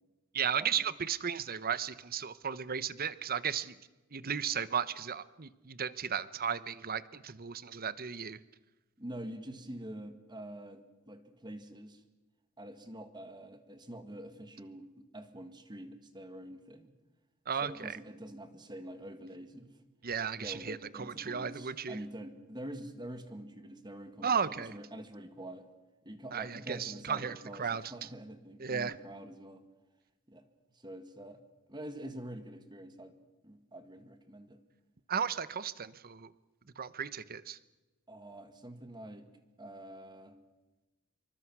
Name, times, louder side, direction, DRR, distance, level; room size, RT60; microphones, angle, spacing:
voice 1, 0.3-3.8 4.1-8.4 17.5-18.0 20.0-22.0 24.2-24.7 26.3-28.1 28.6-28.9 35.1-36.3 36.8-37.6, right 7 dB, 40° right, 15 dB, 0.9 m, -35 dB
voice 2, 9.0-12.0 12.6-16.9 17.6-19.7 20.4-25.7 26.0-29.6 30.3-30.4 30.8-31.4 31.7-33.2 33.4-34.6 38.1-39.3 39.6-40.4, right 1 dB, 20° right, 8 dB, 1.9 m, -46 dB
26.0 x 24.0 x 6.2 m, 1.1 s
head